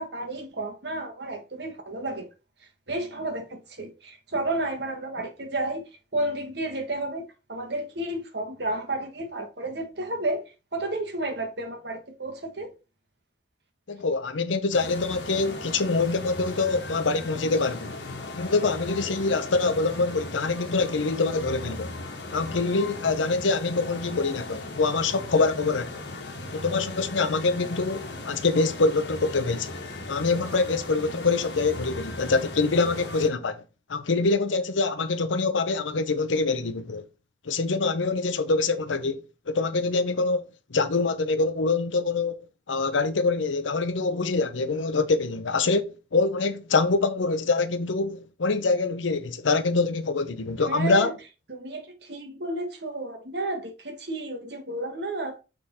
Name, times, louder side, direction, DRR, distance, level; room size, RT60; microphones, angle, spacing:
voice 1, 0.0-2.3 2.6-5.8 6.1-12.7 50.6-51.1 51.5-55.4, right 1 dB, 65° right, 1.4 m, -32 dB
voice 2, 13.9-18.0 18.4-21.9 22.3-25.9 26.5-29.8 30.1-33.6 33.9-37.0 37.4-40.4 40.7-51.1, left 3 dB, 90° left, 0.7 m, -25 dB
sound 1, 14.7-33.3, left 2 dB, 70° left, 1.3 m, -37 dB
6.6 x 3.7 x 4.2 m
head